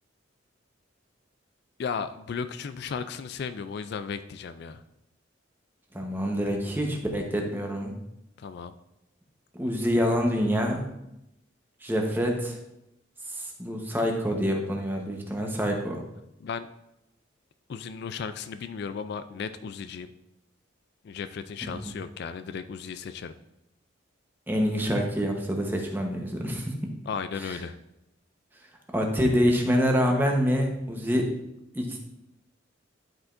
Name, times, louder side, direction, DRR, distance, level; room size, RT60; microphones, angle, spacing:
voice 1, 1.8-4.8 8.4-8.7 16.4-16.7 17.7-20.1 21.0-23.3 27.1-27.7, left 6 dB, 55° left, 11 dB, 0.3 m, -35 dB
voice 2, 5.9-7.9 9.5-10.9 11.8-12.6 13.3-16.0 21.6-21.9 24.5-26.9 28.9-31.3 31.7-32.0, equal, 10° right, 1 dB, 1.0 m, -26 dB
11.5 x 4.9 x 2.6 m, 0.86 s
head